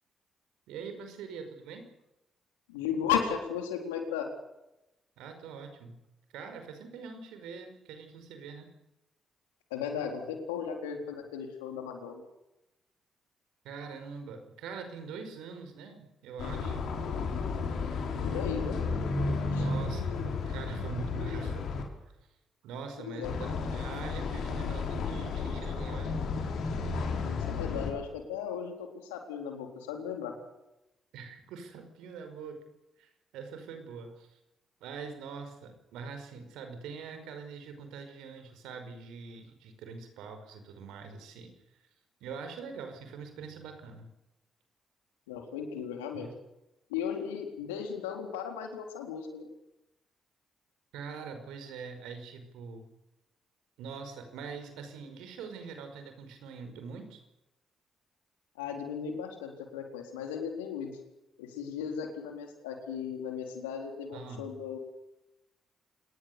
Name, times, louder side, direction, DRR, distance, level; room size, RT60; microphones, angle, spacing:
voice 1, 0.7-1.9 5.2-6.0 6.3-8.7 10.0-10.1 13.6-16.9 19.5-21.7 22.0-22.4 22.6-26.2 31.1-32.6 33.0-34.4 34.8-41.5 42.2-44.1 46.1-46.3 50.9-52.9 53.8-57.2 64.1-64.6, right 5 dB, 75° right, 7 dB, 5.2 m, -43 dB
voice 2, 2.7-4.3 9.7-12.2 18.2-18.8 19.5-19.6 23.0-23.3 27.2-30.3 45.3-46.3 46.9-49.5 58.6-61.0 61.4-64.8, left 7 dB, 90° left, 4 dB, 3.8 m, -36 dB
sound 1, 16.4-21.8 23.2-27.9, left 4 dB, 70° left, 5.1 m, -33 dB
28.0 x 20.0 x 6.9 m, 0.92 s
hypercardioid pair, 45°, 0 cm